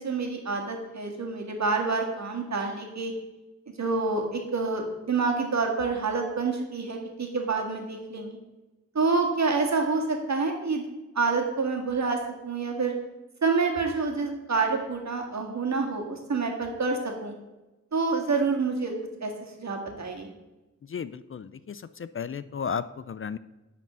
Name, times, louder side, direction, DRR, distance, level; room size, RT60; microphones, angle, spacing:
voice 1, 0.0-3.1 3.8-8.4 8.9-10.8 11.2-12.9 13.4-17.3 17.9-18.9 19.2-19.3 19.6-20.3, right 4 dB, 60° right, 2 dB, 1.9 m, -27 dB
voice 2, 20.9-23.4, left 6 dB, 45° left, 15 dB, 0.4 m, -34 dB
10.5 x 4.3 x 6.2 m, 1.1 s
wide cardioid pair, 70°, 30 cm